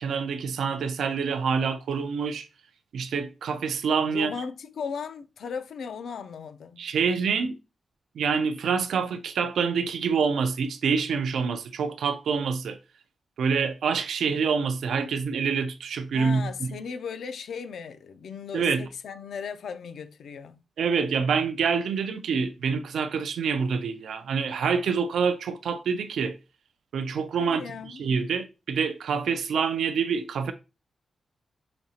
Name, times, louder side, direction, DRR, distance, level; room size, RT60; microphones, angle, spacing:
voice 1, 0.0-2.5 2.9-4.3 6.8-7.5 8.2-12.8 13.4-16.5 18.5-18.9 20.8-26.4 26.9-30.5, right 6 dB, 80° right, 0.3 m, -26 dB
voice 2, 4.1-6.9 16.1-20.6 27.4-27.9, left 6 dB, 75° left, 0.4 m, -37 dB
5.0 x 2.8 x 2.7 m
wide cardioid pair, 165°, 0 cm